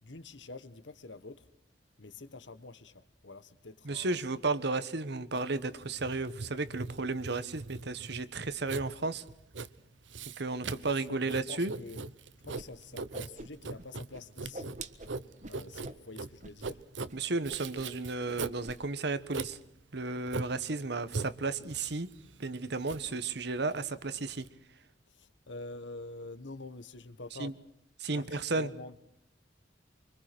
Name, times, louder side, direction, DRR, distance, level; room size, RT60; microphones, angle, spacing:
voice 1, 0.0-1.4 2.0-4.2 10.8-12.0 12.4-14.8 15.4-16.8 25.1-27.5 28.1-29.0, left 3 dB, 75° left, 1.5 m, -47 dB
voice 2, 3.8-9.2 10.4-11.7 17.1-19.6 19.9-22.1 22.4-24.5 27.3-27.5 28.0-28.7, right 3 dB, 65° right, 1.3 m, -33 dB
Writing, 5.3-24.5, right 3 dB, 85° right, 1.0 m, -41 dB
Whoosh swoosh swish, 12.5-12.6 12.9-13.8 14.1-16.0 16.4-16.7 17.0-17.1 17.5-18.0 18.2-18.8, right 2 dB, 40° right, 1.5 m, -45 dB
25.0 x 25.0 x 6.1 m
head